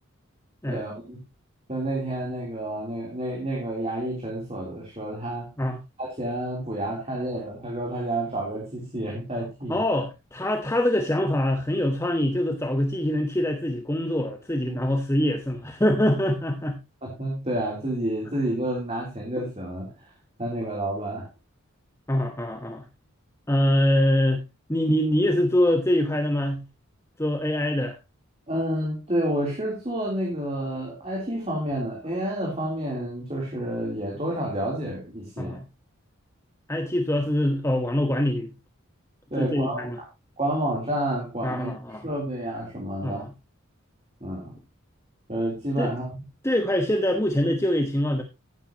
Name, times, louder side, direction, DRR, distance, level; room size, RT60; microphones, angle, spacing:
voice 1, 0.7-1.2 1.7-5.5 6.0-9.8 14.7-14.8 17.0-20.1 20.4-21.3 28.5-35.6 39.3-39.9 40.4-43.3 44.2-44.5 45.3-46.1, right 1 dB, 30° right, -2 dB, 3.3 m, -29 dB
voice 2, 9.7-16.8 22.1-22.9 23.5-24.4 24.7-26.6 27.2-28.0 35.4-35.6 36.7-38.5 39.3-40.0 41.4-42.1 43.0-43.3 45.8-45.9 46.4-48.2, left 1 dB, 15° left, 4 dB, 1.1 m, -24 dB
14.5 x 9.1 x 2.9 m, 0.25 s
head